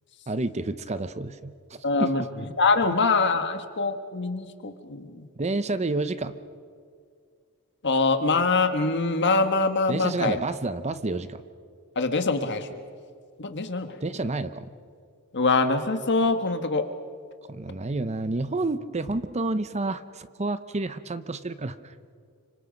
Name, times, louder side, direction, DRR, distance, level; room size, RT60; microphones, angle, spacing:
voice 1, 0.3-1.5 2.0-2.1 5.4-6.3 9.9-11.4 14.0-14.7 17.5-21.9, right 2 dB, 30° right, 12 dB, 0.8 m, -29 dB
voice 2, 1.8-5.3 7.8-10.4 11.9-12.7 13.4-14.0 15.3-16.8, left 3 dB, 55° left, 8 dB, 1.6 m, -24 dB
30.0 x 26.0 x 5.3 m, 2.1 s
head